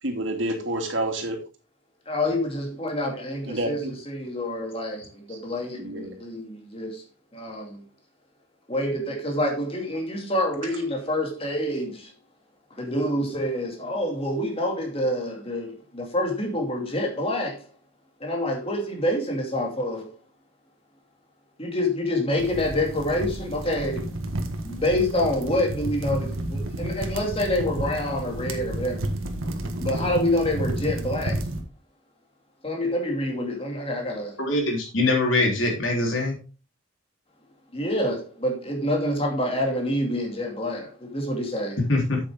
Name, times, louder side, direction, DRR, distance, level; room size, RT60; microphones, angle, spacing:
voice 1, 0.0-1.4 3.5-3.9 5.3-5.4 5.8-6.1, right 1 dB, 70° right, 2.7 m, -28 dB
voice 2, 2.1-7.0 7.3-7.8 8.7-12.1 12.7-17.7 18.2-20.1 21.6-24.1 24.6-29.2 29.8-31.4 32.6-34.4 37.7-41.8, left 1 dB, 30° left, 2.4 m, -27 dB
sound 1, 22.4-31.6, right 1 dB, 85° right, 1.6 m, -31 dB
voice 3, 34.4-36.4 41.9-42.2, left 2 dB, 75° left, 3.5 m, -23 dB
8.5 x 8.2 x 3.6 m
head